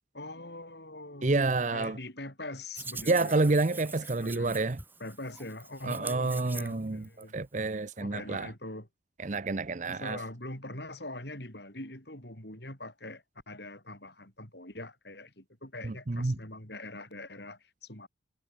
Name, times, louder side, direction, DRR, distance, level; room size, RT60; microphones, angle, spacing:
voice 1, 0.1-3.5 4.0-4.6 5.0-7.3 8.0-8.9 9.9-18.1, left 1 dB, 60° left, 7.6 m, -43 dB
voice 2, 1.2-2.0 3.1-4.8 5.8-8.5 9.2-10.2 15.8-16.4, right 3 dB, 40° right, 0.7 m, -29 dB
Hands, 2.7-7.2, right 4 dB, 10° right, 2.8 m, -44 dB
head